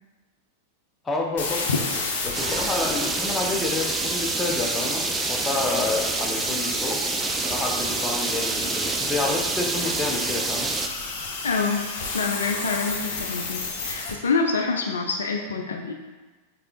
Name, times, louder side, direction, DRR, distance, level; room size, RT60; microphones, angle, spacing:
voice 1, 1.0-1.7 2.2-7.0 7.4-10.7, left 3 dB, 15° left, 0 dB, 0.7 m, -29 dB
sound 1, 1.4-14.1, left 3 dB, 50° left, 0.8 m, -32 dB
sound 2, 2.3-10.9, right 4 dB, 15° right, 0.3 m, -28 dB
voice 2, 11.4-11.8 12.1-15.9, left 4 dB, 70° left, 3 dB, 0.3 m, -26 dB
5.0 x 3.4 x 2.8 m, 1.3 s
figure-of-eight pair, 90°, 0 cm